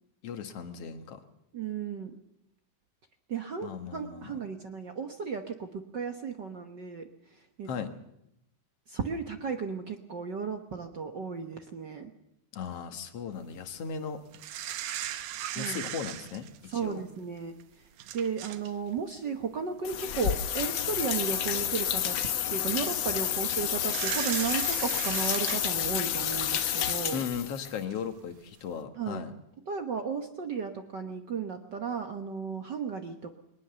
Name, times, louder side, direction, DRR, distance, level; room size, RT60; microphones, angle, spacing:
voice 1, 0.2-1.2 3.6-4.3 7.7-7.9 12.5-14.2 15.6-17.0 27.1-29.3, left 7 dB, 55° left, 9 dB, 2.2 m, -37 dB
voice 2, 1.5-2.1 3.3-7.1 7.6-7.7 8.9-12.1 15.5-15.9 16.7-17.5 18.1-22.2 22.5-27.2 29.0-29.2 29.7-33.4, right 6 dB, 60° right, 7 dB, 1.1 m, -34 dB
sound 1, 14.3-17.0 17.6-17.7 18.0-18.7 19.0-19.2 20.3-20.4 20.8-21.3 22.0-22.3 23.8-27.4 27.9-28.0, right 12 dB, 80° right, 2.5 m, -38 dB
sound 2, 19.8-27.7, left 10 dB, 85° left, 1.0 m, -30 dB
22.5 x 19.5 x 6.9 m, 0.80 s
omnidirectional pair, 3.7 m